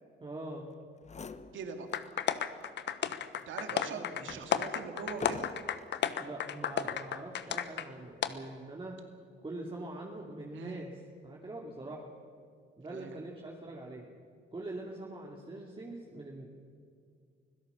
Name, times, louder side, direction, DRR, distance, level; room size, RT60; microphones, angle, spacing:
voice 1, 0.2-0.7 3.8-4.4 6.2-8.9 9.4-12.1 12.8-14.0 14.5-16.5, right 2 dB, 25° right, -1 dB, 2.8 m, -43 dB
sound 1, 0.7-0.8 1.0-2.2 2.6-2.7 3.4-6.0 6.7-7.1, left 5 dB, 35° left, 1.1 m, -46 dB
voice 2, 1.5-1.9 3.5-5.5 10.5-10.9 12.9-13.2, right 5 dB, 75° right, 5 dB, 2.5 m, -42 dB
sound 2, 1.9-7.9 8.2-8.3, left 9 dB, 60° left, 1.2 m, -33 dB
25.0 x 16.5 x 7.1 m, 2.3 s
cardioid pair, 90°, 20 cm